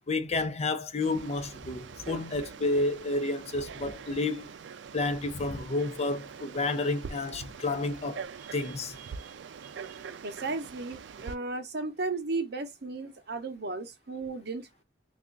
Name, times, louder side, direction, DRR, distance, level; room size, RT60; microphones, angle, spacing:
voice 1, 0.1-4.5 4.9-9.0, left 2 dB, 35° left, 0.5 m, -30 dB
Frog, 1.0-11.4, right 6 dB, 85° right, 0.4 m, -44 dB
voice 2, 9.0-9.4 9.6-14.7, right 3 dB, 65° right, 0.8 m, -35 dB
3.4 x 2.4 x 3.8 m
head